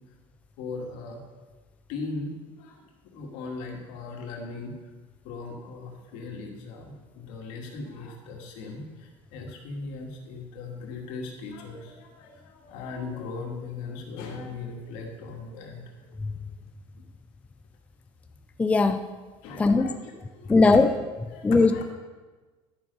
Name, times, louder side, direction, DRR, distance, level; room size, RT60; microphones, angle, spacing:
voice 1, 0.6-1.2 1.9-2.8 3.1-4.8 5.2-15.8 19.4-20.0 20.3-20.8 21.3-21.8, left 3 dB, 70° left, 1 dB, 2.2 m, -38 dB
voice 2, 18.6-19.1 19.6-19.9 20.5-20.9 21.4-21.9, left 3 dB, 10° left, 8 dB, 0.4 m, -19 dB
11.0 x 7.0 x 5.4 m, 1.3 s
cardioid pair, 140°, 12 cm